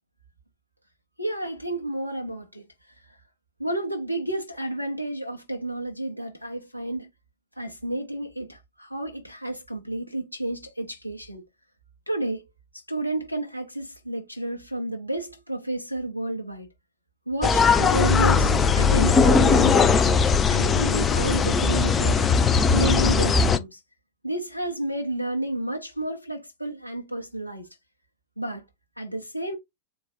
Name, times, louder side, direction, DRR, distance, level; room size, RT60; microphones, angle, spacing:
voice 1, 1.2-2.6 3.0-3.2 3.6-7.1 7.6-11.4 12.1-12.4 12.7-16.7 17.3-22.1 22.7-23.8 24.2-27.7 28.4-28.6 29.0-29.6, right 1 dB, 90° left, 0.8 m, -31 dB
sound 1, 17.4-23.6, left 5 dB, 20° left, 0.4 m, -19 dB
3.9 x 2.3 x 4.0 m
figure-of-eight pair, 90°, 0 cm